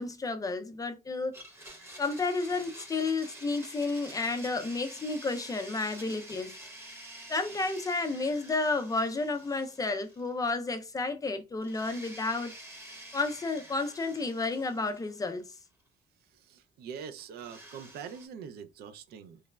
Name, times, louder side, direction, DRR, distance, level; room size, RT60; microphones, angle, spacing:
voice 1, 0.0-1.3 2.0-6.5 7.3-12.5 13.1-15.4, left 3 dB, 20° left, 0.4 m, -31 dB
Domestic sounds home sounds, 1.3-10.5 10.8-10.9 11.6-15.6 17.4-18.3, right 1 dB, 15° right, 0.9 m, -49 dB
voice 2, 16.3-19.4, right 7 dB, 70° right, 0.4 m, -44 dB
3.1 x 2.0 x 2.2 m
cardioid pair, 110°, 17 cm